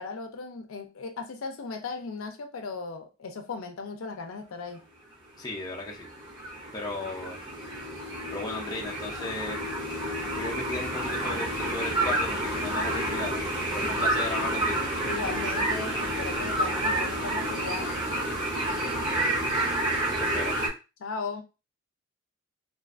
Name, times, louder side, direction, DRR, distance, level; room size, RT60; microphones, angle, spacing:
voice 1, 0.0-4.9 15.1-17.9 21.0-21.4, left 4 dB, 75° left, 0.5 m, -37 dB
voice 2, 5.4-6.1 6.7-7.4 8.3-9.6 10.2-13.4 13.7-14.8 20.1-20.6, left 2 dB, 20° left, 0.5 m, -35 dB
sound 1, 5.7-20.7, right 1 dB, 20° right, 0.6 m, -29 dB
2.5 x 2.4 x 2.4 m
head